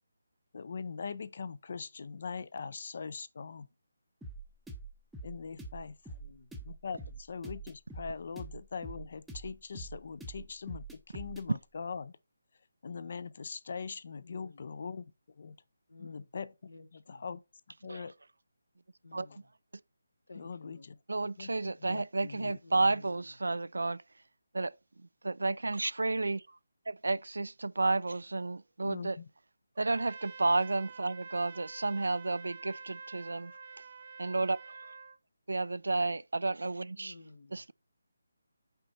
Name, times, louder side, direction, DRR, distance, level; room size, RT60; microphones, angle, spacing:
voice 1, 0.5-3.7 5.2-5.9 6.7-10.8 11.1-12.1 12.8-15.1 15.4-15.5 16.0-16.5 17.1-17.4 17.8-18.1 20.4-20.9 21.4-22.6 28.8-29.2, left 5 dB, 50° left, 0.5 m, -41 dB
sound 1, 4.2-11.5, right 2 dB, ahead, 0.6 m, -45 dB
voice 2, 6.1-6.5 7.0-7.2 14.2-14.6 15.9-16.3 16.7-17.2 19.0-19.5 20.3-21.0 22.6-23.3 37.0-37.6, left 3 dB, 75° left, 1.0 m, -54 dB
voice 3, 21.1-24.0 24.5-24.7 25.2-26.6 26.9-29.2 29.8-33.5 34.2-34.6 35.5-37.1 37.5-37.7, right 3 dB, 80° right, 0.3 m, -31 dB
Trumpet, 29.7-35.2, right 5 dB, 45° right, 0.6 m, -48 dB
5.6 x 4.2 x 4.0 m
figure-of-eight pair, 160°, 0 cm